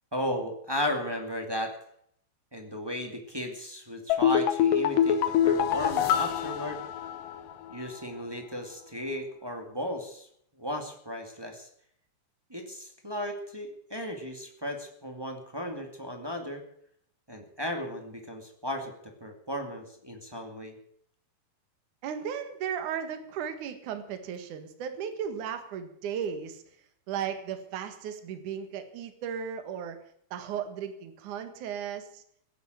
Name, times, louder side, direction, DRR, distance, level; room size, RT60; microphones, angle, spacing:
voice 1, 0.1-1.7 2.5-6.8 7.7-10.3 10.6-11.7 12.5-16.6 17.3-20.7, equal, 10° right, 3 dB, 1.4 m, -35 dB
sound 1, 4.1-7.5 7.8-7.9, left 9 dB, 70° left, 2.6 m, -25 dB
voice 2, 22.0-26.6 27.1-30.0 30.3-32.2, right 8 dB, 60° right, 9 dB, 2.9 m, -35 dB
16.5 x 9.3 x 9.2 m, 0.67 s
omnidirectional pair, 4.3 m